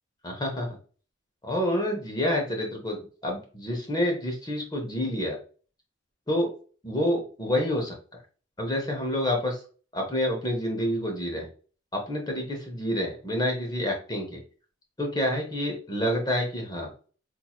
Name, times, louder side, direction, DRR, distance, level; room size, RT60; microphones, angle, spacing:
voice 1, 0.2-0.7 1.4-3.0 3.2-5.4 6.3-6.5 6.8-7.9 8.6-9.6 9.9-11.4 11.9-14.4 15.0-16.9, left 1 dB, 20° left, 1 dB, 0.8 m, -28 dB
4.3 x 2.6 x 2.3 m, 0.39 s
head